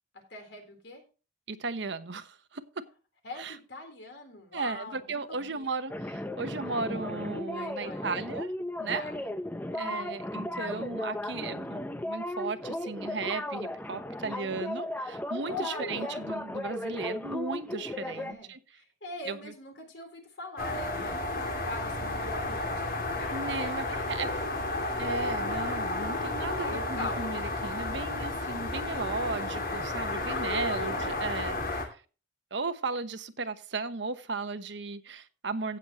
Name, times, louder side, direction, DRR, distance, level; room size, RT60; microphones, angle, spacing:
voice 1, 0.3-1.0 3.2-5.7 7.5-8.1 8.9-9.1 9.7-10.1 15.5-16.3 18.0-18.5 18.8-23.9 24.2-24.4 26.4-27.2 30.2-31.3, left 2 dB, 65° left, 3.7 m, -42 dB
voice 2, 1.5-2.8 3.4-3.6 4.5-8.5 8.8-9.0 9.7-18.6 19.3-19.5 23.3-24.3 25.0-32.0 32.5-35.8, right 3 dB, 70° right, 1.0 m, -35 dB
sound 1, 5.9-18.3, left 1 dB, 10° left, 0.6 m, -36 dB
sound 2, 20.6-31.8, left 2 dB, 50° left, 2.5 m, -32 dB
16.5 x 7.2 x 2.9 m
head